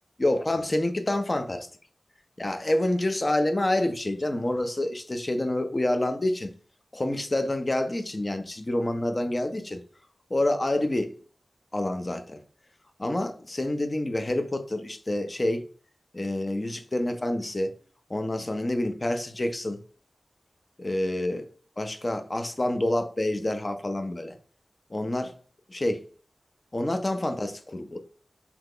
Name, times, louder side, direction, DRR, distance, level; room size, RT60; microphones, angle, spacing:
voice 1, 0.2-1.7 2.4-6.5 6.9-9.8 10.3-11.2 11.7-12.4 13.0-15.7 16.1-17.8 18.1-19.8 20.8-21.5 21.8-24.4 24.9-25.3 25.7-26.0 26.7-28.0, left 1 dB, 30° left, 0.4 m, -27 dB
2.9 x 2.3 x 3.5 m
wide cardioid pair, 90°, 0 cm